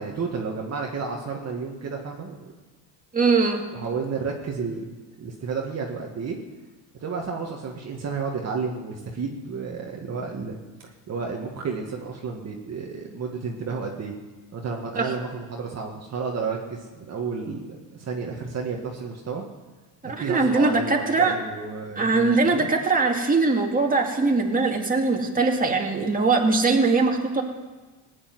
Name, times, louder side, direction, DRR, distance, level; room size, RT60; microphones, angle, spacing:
voice 1, 0.0-2.5 3.7-4.9 5.2-6.4 7.0-10.6 11.1-14.1 14.5-19.4 20.2-22.7, right 5 dB, 40° right, 0 dB, 1.9 m, -31 dB
voice 2, 3.1-3.6 15.0-15.1 20.0-21.3 22.0-27.4, right 3 dB, 20° right, 1 dB, 2.5 m, -21 dB
17.0 x 8.8 x 9.4 m, 1.3 s
cardioid pair, 100°, 41 cm